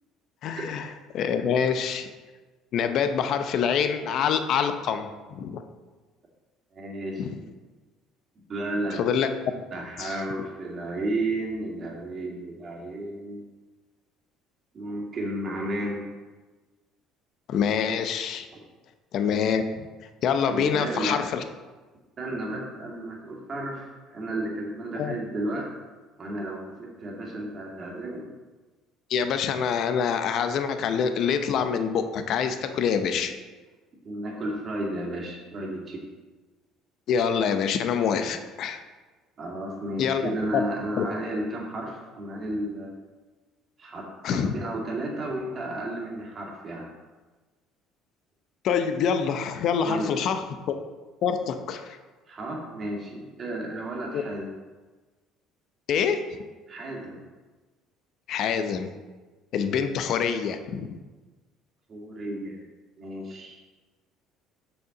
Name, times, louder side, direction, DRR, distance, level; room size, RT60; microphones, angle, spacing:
voice 1, 0.4-0.8 1.1-2.1 2.7-5.6 7.2-7.3 8.9-9.3 10.0-10.2 17.5-18.5 19.1-19.6 20.2-21.4 25.0-25.2 29.1-33.3 37.1-38.8 40.0-40.2 40.5-40.6 41.0-41.1 44.2-44.6 48.6-50.4 51.2-52.0 54.1-54.2 55.9-56.2 58.3-58.9 59.5-61.0, left 7 dB, 60° left, 8 dB, 0.6 m, -25 dB
voice 2, 6.7-7.3 8.5-9.0 9.7-13.4 14.7-16.0 18.5-18.6 20.5-21.3 22.2-25.7 26.2-28.3 34.0-36.0 39.4-42.9 43.8-46.9 49.8-50.2 52.3-54.6 56.7-57.2 61.9-62.6 63.0-63.6, right 1 dB, 40° right, -1 dB, 2.1 m, -33 dB
6.2 x 6.2 x 3.8 m, 1.3 s
supercardioid pair, 75°, 0 cm